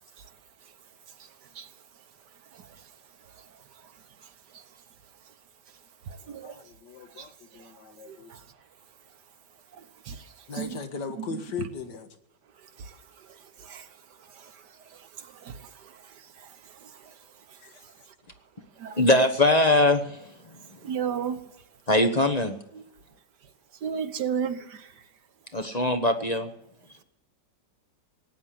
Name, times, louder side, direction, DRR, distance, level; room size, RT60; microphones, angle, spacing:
voice 1, 0.0-5.4 5.7-6.7 7.0-9.2 9.7-10.8 11.2-11.7 12.5-18.2 18.6-19.0 20.5-21.7 22.7-22.8 23.4-25.1, right 7 dB, 65° right, 1.6 m, -39 dB
voice 2, 6.4-8.3 10.5-12.1 17.6-17.8, left 5 dB, 70° left, 2.1 m, -38 dB
voice 3, 19.0-20.2 21.9-22.5 25.5-26.5, left 2 dB, 25° left, 1.0 m, -21 dB
18.0 x 10.0 x 7.6 m
omnidirectional pair, 2.0 m